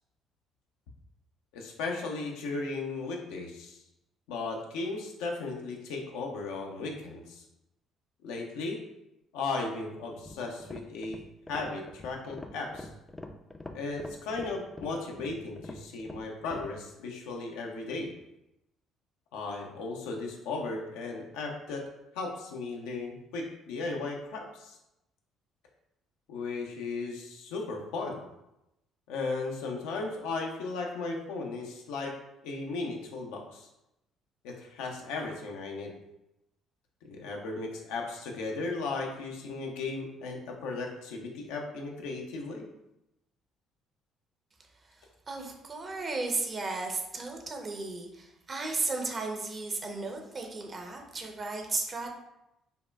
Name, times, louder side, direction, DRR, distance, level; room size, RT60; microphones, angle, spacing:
voice 1, 1.5-3.8 4.3-7.4 8.2-8.8 9.3-11.2 11.5-12.9 13.7-18.1 19.3-21.8 22.1-24.8 26.3-28.2 29.1-32.1 32.4-33.7 34.4-36.0 37.0-42.7, left 3 dB, 75° left, 1 dB, 0.5 m, -36 dB
sound 1, 10.1-16.8, left 2 dB, 15° left, 0.4 m, -45 dB
voice 2, 45.3-52.1, right 3 dB, 40° right, 2 dB, 0.7 m, -34 dB
5.2 x 2.1 x 2.3 m, 0.89 s
hypercardioid pair, 50°, 0 cm